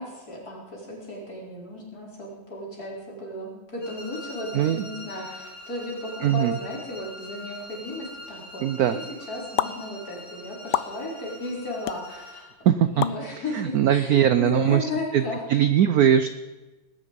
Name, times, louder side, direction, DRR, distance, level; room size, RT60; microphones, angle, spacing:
voice 1, 0.0-9.0 9.3-12.5 12.9-15.4, left 2 dB, 45° left, -4 dB, 4.7 m, -35 dB
sound 1, 3.8-12.5, left 1 dB, 20° left, 3.5 m, -43 dB
voice 2, 4.5-4.9 6.2-6.6 8.6-9.0 12.6-13.0 13.5-14.9 15.1-15.2 15.5-16.3, right 10 dB, 80° right, 11 dB, 0.8 m, -20 dB
sound 2, 9.6-9.7 10.7-10.9 11.9-12.0 13.0-13.2, left 12 dB, 70° left, 1.0 m, -25 dB
19.5 x 9.9 x 5.3 m, 1.2 s
omnidirectional pair, 2.2 m